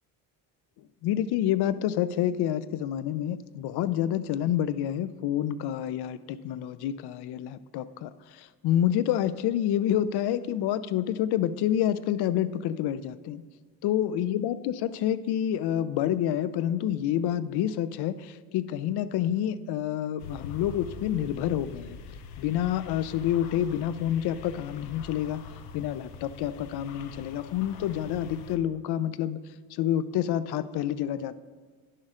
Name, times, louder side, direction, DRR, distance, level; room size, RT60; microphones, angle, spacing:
voice 1, 1.0-13.4 13.8-22.0 22.4-25.4 25.7-29.4 29.7-31.4, left 11 dB, 60° left, 16 dB, 0.5 m, -28 dB
sound 1, 20.2-28.6, left 5 dB, 90° left, 0.8 m, -44 dB
10.0 x 6.4 x 3.7 m, 1.5 s
supercardioid pair, 85°, 46 cm